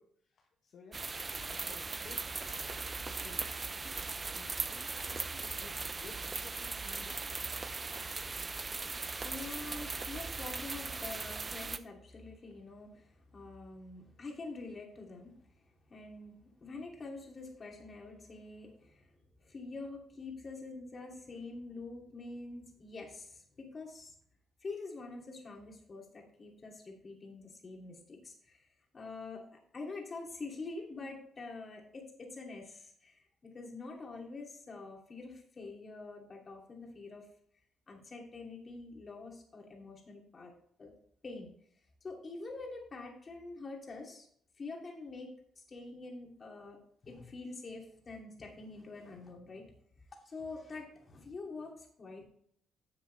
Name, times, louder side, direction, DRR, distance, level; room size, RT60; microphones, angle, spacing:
voice 1, 0.0-3.7 4.3-7.2, left 5 dB, 60° left, 0 dB, 1.3 m, -56 dB
sound 1, 0.9-11.8, right 4 dB, 30° right, 0.6 m, -39 dB
voice 2, 9.2-15.4 15.9-19.1 19.4-24.1 24.6-28.6 28.9-37.3 37.9-40.5 40.8-40.9 41.2-41.5 42.0-44.3 44.6-49.7 50.2-52.2, left 3 dB, 35° left, 0 dB, 2.8 m, -46 dB
10.5 x 7.2 x 3.4 m, 0.63 s
cardioid pair, 90°, 0 cm